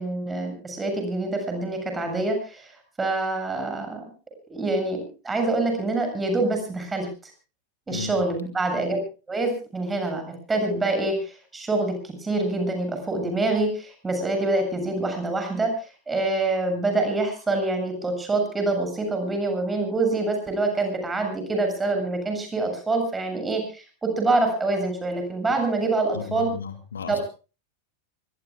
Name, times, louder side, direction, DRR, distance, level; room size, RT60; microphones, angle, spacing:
voice 1, 0.0-2.7 3.0-4.0 4.5-7.1 7.9-9.0 9.3-10.2 10.5-26.5 27.1-27.2, right 2 dB, 15° right, 5 dB, 7.5 m, -26 dB
voice 2, 7.9-8.2 26.1-27.2, left 5 dB, 70° left, 8 dB, 2.7 m, -34 dB
25.0 x 20.5 x 2.4 m, 0.34 s
figure-of-eight pair, 90°, 0 cm